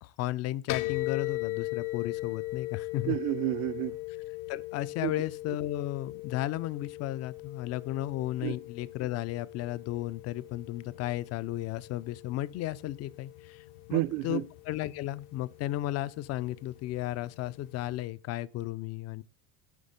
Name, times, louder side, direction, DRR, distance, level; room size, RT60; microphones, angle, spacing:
voice 1, 0.0-3.2 4.5-19.2, left 14 dB, 40° left, 0.4 m, -34 dB
sound 1, 0.7-18.0, left 20 dB, 65° left, 0.8 m, -40 dB
voice 2, 3.1-4.0 5.0-5.1 8.4-8.5 13.9-14.4, right 18 dB, 50° right, 0.5 m, -30 dB
9.7 x 4.1 x 5.1 m
supercardioid pair, 120°, 42 cm